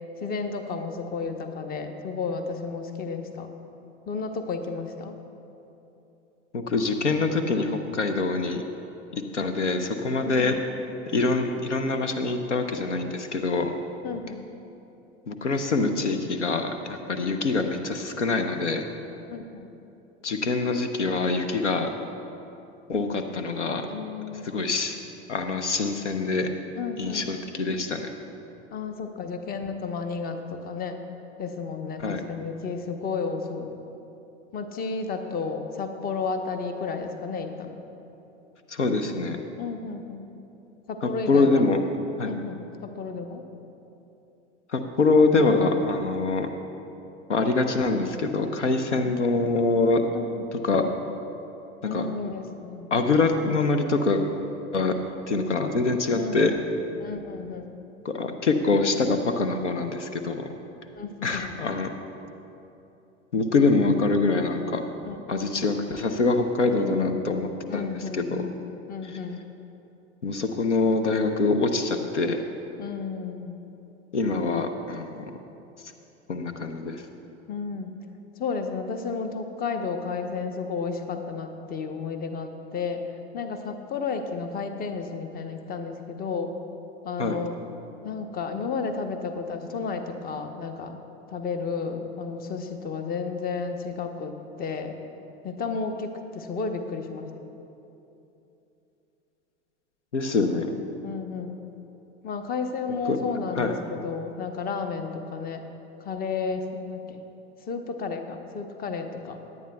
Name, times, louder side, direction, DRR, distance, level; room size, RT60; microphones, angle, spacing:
voice 1, 0.2-3.5 4.1-5.2 10.2-10.6 14.0-14.5 17.2-17.4 19.3-19.7 23.9-24.6 26.8-27.4 28.7-31.0 31.4-33.8 34.5-37.8 39.6-40.3 40.9-41.7 42.2-43.4 48.9-49.2 50.1-50.4 51.8-52.9 56.2-56.6 57.0-57.7 61.0-61.5 65.0-65.2 66.7-68.5 68.9-69.4 72.8-73.6 77.5-77.9 78.4-86.6 87.0-87.6 88.0-91.0 91.3-95.0 95.4-97.3 101.0-101.6 102.2-105.6 106.0-107.2 107.7-109.4, left 5 dB, 25° left, 7 dB, 0.8 m, -32 dB
voice 2, 6.5-8.6 9.1-10.5 11.1-13.7 15.3-18.8 20.2-21.9 22.9-23.9 24.4-25.0 25.3-26.5 27.0-28.1 32.0-32.2 38.7-39.4 41.0-41.8 42.2-42.3 44.7-46.5 47.3-50.0 50.5-50.8 51.9-52.1 52.9-54.2 54.7-55.0 55.3-56.5 58.0-60.5 61.2-61.9 63.3-64.8 65.3-68.5 69.0-69.2 70.2-72.4 74.1-75.3 76.3-77.1 87.2-87.4 100.1-100.7 103.1-103.2 103.6-103.7, left 3 dB, 85° left, 7 dB, 0.7 m, -24 dB
17.0 x 10.5 x 2.3 m, 2.9 s
figure-of-eight pair, 80°, 35 cm